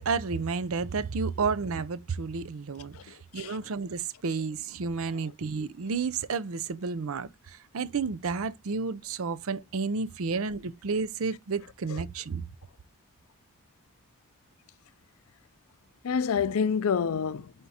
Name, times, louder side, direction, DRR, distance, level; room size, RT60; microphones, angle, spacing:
voice 1, 0.0-12.4, right 4 dB, 70° right, 0.5 m, -31 dB
voice 2, 2.9-3.6 5.1-5.3 11.9-12.0 16.0-17.5, left 6 dB, 75° left, 0.4 m, -28 dB
9.4 x 3.6 x 2.8 m
head